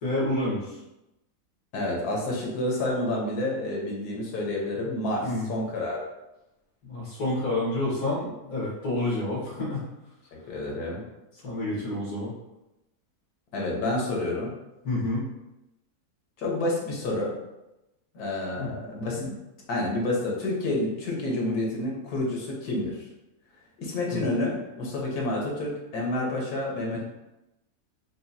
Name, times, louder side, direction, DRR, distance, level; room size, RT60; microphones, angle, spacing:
voice 1, 0.0-0.8 5.2-5.5 6.8-9.9 11.4-12.3 14.8-15.3 18.5-18.7 24.1-24.2 26.9-27.0, left 1 dB, 70° left, -6 dB, 2.0 m, -29 dB
voice 2, 1.7-6.0 10.5-11.0 13.5-14.5 16.4-17.3 18.2-19.3 19.7-23.0 23.8-27.0, left 1 dB, 90° left, -2 dB, 1.5 m, -29 dB
5.9 x 2.3 x 2.7 m, 0.94 s
omnidirectional pair, 1.6 m